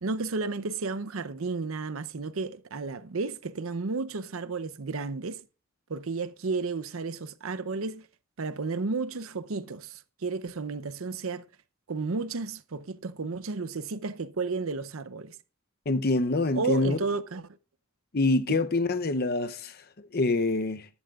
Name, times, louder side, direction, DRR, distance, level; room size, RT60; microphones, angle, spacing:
voice 1, 0.0-5.4 5.9-8.1 8.4-11.4 11.9-15.4 16.5-17.5 18.5-18.6, right 4 dB, 75° right, 0.7 m, -32 dB
voice 2, 15.9-17.0 18.1-20.9, left 2 dB, 45° left, 0.7 m, -26 dB
14.0 x 11.5 x 2.4 m
head